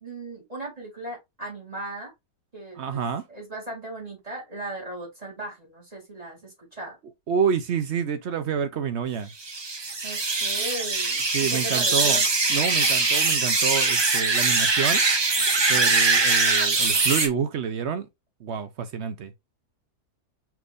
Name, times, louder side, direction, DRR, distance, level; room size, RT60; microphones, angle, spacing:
voice 1, 0.0-2.1 2.5-7.0 10.0-12.3, right 2 dB, 25° right, 2.5 m, -37 dB
voice 2, 2.8-3.2 7.3-9.3 11.3-12.2 12.5-15.0 15.7-18.1 18.4-19.3, right 7 dB, 60° right, 0.7 m, -28 dB
sound 1, 9.4-17.3, right 3 dB, 40° right, 0.3 m, -22 dB
6.0 x 3.4 x 2.5 m
omnidirectional pair, 1.6 m